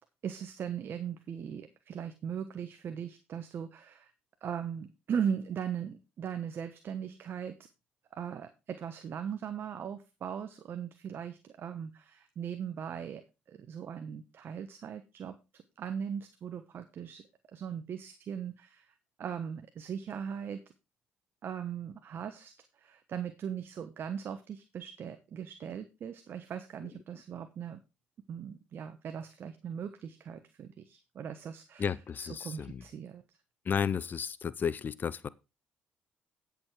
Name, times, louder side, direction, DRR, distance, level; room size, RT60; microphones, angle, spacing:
voice 1, 0.2-4.1 4.4-7.5 8.1-13.2 13.5-17.2 17.5-20.6 21.4-27.8 28.3-31.9 32.2-33.2, right 8 dB, 60° right, 1.1 m, -39 dB
voice 2, 31.8-32.8 33.7-35.3, left 7 dB, 45° left, 0.6 m, -33 dB
9.6 x 7.0 x 4.9 m
supercardioid pair, 60°, 4 cm